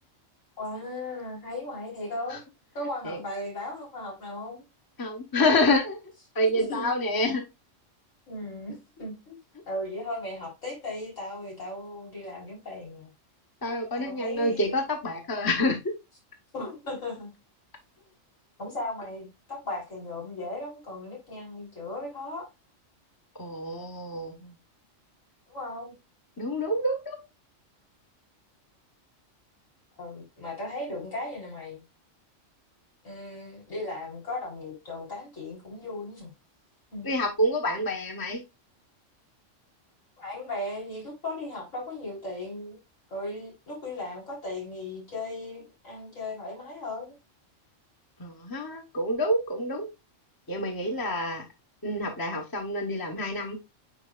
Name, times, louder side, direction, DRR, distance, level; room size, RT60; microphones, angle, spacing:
voice 1, 0.6-2.4 2.7-4.6 6.4-6.9 8.3-9.4 9.7-13.1 13.9-14.8 16.5-17.3 18.6-22.5 25.5-25.9 30.0-31.8 33.0-36.3 36.9-37.1 40.2-42.8 43.1-47.1, left 2 dB, 80° left, 4.4 m, -37 dB
voice 2, 5.0-6.0 6.3-7.4 13.6-15.9 23.4-24.5 26.4-27.2 37.0-38.4 48.2-49.9 50.5-51.4 51.8-53.6, left 1 dB, 20° left, 1.0 m, -27 dB
9.3 x 4.4 x 2.4 m
omnidirectional pair, 1.3 m